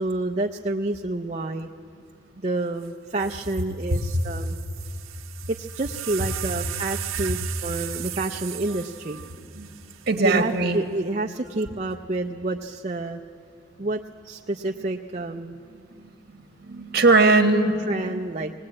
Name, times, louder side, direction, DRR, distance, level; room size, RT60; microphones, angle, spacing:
voice 1, 0.0-1.7 2.4-4.6 5.5-9.2 10.2-13.2 13.8-15.6 17.3-17.4 17.9-18.5, right 2 dB, 35° right, 2 dB, 0.5 m, -29 dB
sound 1, 2.8-2.9 3.2-10.6 11.5-11.9, right 13 dB, 90° right, 0.7 m, -37 dB
voice 2, 10.1-10.8 15.8-18.0, right 3 dB, 50° right, 5 dB, 1.4 m, -21 dB
19.5 x 19.5 x 8.7 m, 2.3 s
head